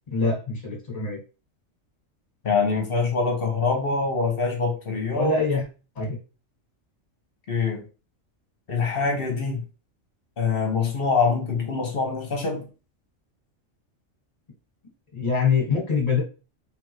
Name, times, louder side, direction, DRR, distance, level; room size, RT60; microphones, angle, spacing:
voice 1, 0.1-1.2 5.1-5.6 5.9-6.2 15.1-16.2, left 5 dB, 30° left, -1 dB, 1.5 m, -24 dB
voice 2, 2.4-5.4 7.5-7.8 8.7-9.6 10.4-12.6, left 4 dB, 50° left, 3 dB, 1.1 m, -24 dB
3.5 x 3.4 x 3.1 m, 0.33 s
omnidirectional pair, 1.3 m